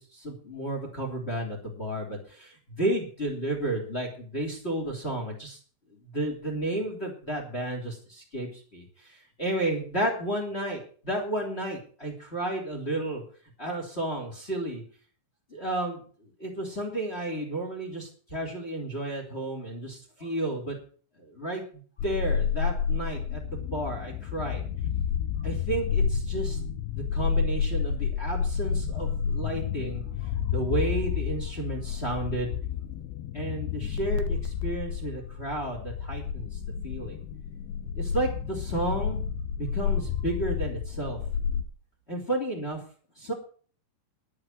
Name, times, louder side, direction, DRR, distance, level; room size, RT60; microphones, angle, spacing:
voice 1, 0.0-5.6 5.9-13.2 13.6-14.8 15.5-20.8 21.2-24.6 25.4-26.6 26.9-32.5 33.3-36.6 36.8-37.2 38.0-39.2 39.6-41.2 42.1-42.8 43.2-43.3, right 1 dB, 15° left, 1 dB, 2.3 m, -32 dB
sound 1, 22.0-41.6, left 7 dB, 80° left, 2.4 m, -30 dB
11.5 x 8.6 x 7.5 m, 0.43 s
omnidirectional pair, 5.8 m